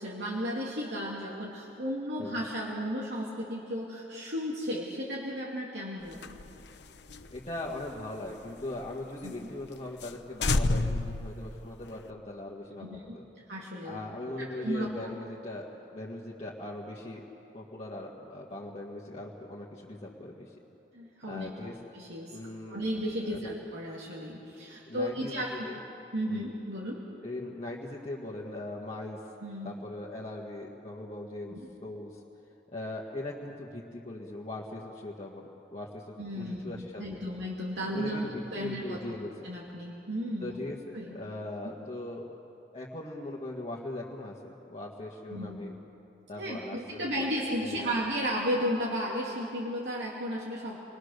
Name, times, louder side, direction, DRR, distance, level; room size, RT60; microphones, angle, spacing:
voice 1, 0.0-6.4 9.2-9.3 12.8-13.0 13.5-14.0 14.4-14.9 20.9-21.5 21.9-22.3 22.7-25.6 26.1-27.0 29.4-29.7 31.5-31.6 36.2-39.2 39.4-40.6 40.9-41.2 45.3-45.6 46.4-50.8, equal, 80° right, -4 dB, 2.8 m, -34 dB
sound 1, 6.1-8.9 9.2-9.3 9.7-9.8 10.0-10.2 10.4-12.1, left 2 dB, 75° left, 0.9 m, -31 dB
voice 2, 7.3-13.2 13.8-17.3 17.5-20.6 21.3-21.8 22.3-22.8 23.3-23.5 24.9-25.8 26.3-26.5 27.2-29.2 29.6-32.2 32.7-37.3 37.8-39.5 40.4-42.3 42.7-45.7 46.3-48.1, left 2 dB, 35° left, -4 dB, 1.7 m, -40 dB
29.5 x 21.0 x 6.7 m, 2.9 s
head